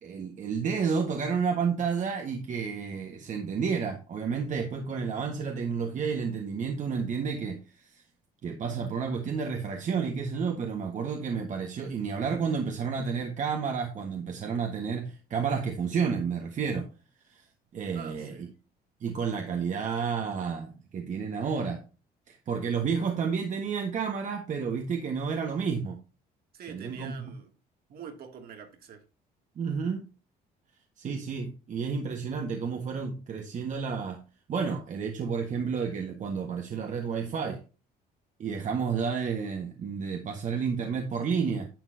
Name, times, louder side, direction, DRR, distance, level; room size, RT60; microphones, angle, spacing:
voice 1, 0.0-8.0 8.4-16.9 17.3-17.4 17.7-18.3 19.0-21.8 22.3-26.0 26.7-27.3 29.6-30.0 31.0-34.2 34.5-37.6 38.4-41.7, right 6 dB, 45° right, 3 dB, 1.6 m, -31 dB
voice 2, 17.9-18.5 26.5-27.5 27.9-29.0, right 7 dB, 65° right, 4 dB, 2.6 m, -45 dB
10.5 x 7.2 x 2.8 m, 0.31 s
cardioid pair, 110°, 17 cm